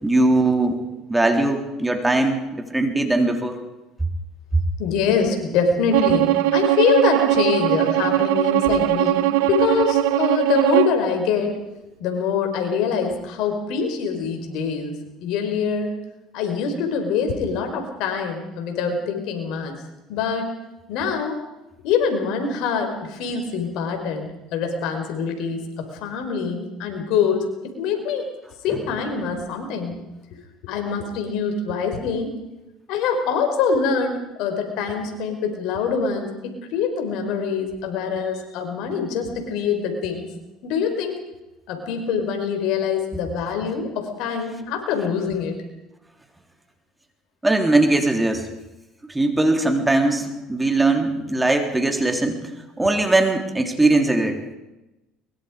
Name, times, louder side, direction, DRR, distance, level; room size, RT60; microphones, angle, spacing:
voice 1, 0.0-0.8 1.1-3.6 47.4-48.5 49.1-52.4 52.8-54.4, right 2 dB, 10° right, 4 dB, 3.5 m, -20 dB
voice 2, 4.8-11.5 12.0-14.9 15.2-16.0 16.3-19.7 20.1-20.5 20.9-21.4 21.8-28.3 28.6-30.0 30.6-32.3 32.9-40.3 40.6-41.2 41.7-45.6, left 6 dB, 70° left, 5 dB, 5.0 m, -24 dB
Bowed string instrument, 5.9-11.0, right 15 dB, 80° right, 0.9 m, -20 dB
23.5 x 22.5 x 5.2 m, 0.99 s
supercardioid pair, 85°, 0 cm